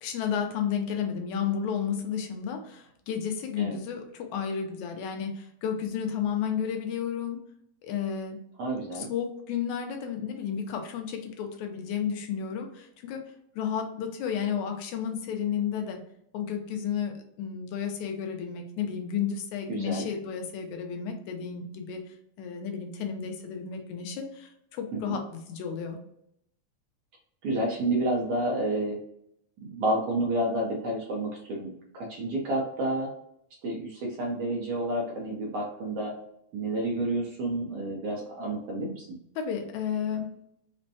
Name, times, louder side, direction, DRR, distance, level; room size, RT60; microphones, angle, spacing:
voice 1, 0.0-7.4 7.8-8.4 8.9-13.2 13.6-16.0 16.3-22.0 22.4-25.2 25.5-26.0 39.4-40.4, left 7 dB, 85° left, 4 dB, 2.0 m, -32 dB
voice 2, 8.6-9.1 19.7-20.1 24.9-25.2 27.4-29.0 29.7-33.1 33.6-36.1 36.5-39.1, right 1 dB, 70° right, -1 dB, 1.6 m, -30 dB
5.2 x 2.1 x 2.7 m, 0.74 s
omnidirectional pair, 3.4 m